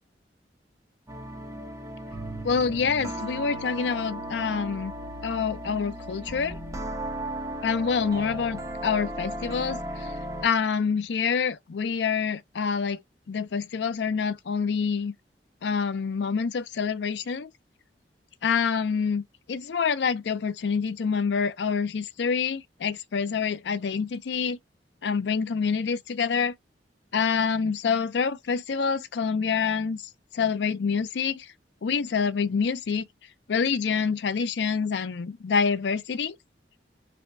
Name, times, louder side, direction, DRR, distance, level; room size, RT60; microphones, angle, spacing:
sound 1, 1.1-10.6, right 1 dB, 20° right, 0.9 m, -36 dB
voice 1, 2.4-4.9 5.2-6.6 7.6-10.1 10.4-13.0 13.3-15.1 15.6-17.5 18.4-19.2 19.5-24.6 25.0-26.5 27.1-30.0 30.3-31.5 31.8-33.1 33.5-36.4, left 5 dB, 75° left, 0.5 m, -26 dB
3.4 x 2.2 x 3.9 m
head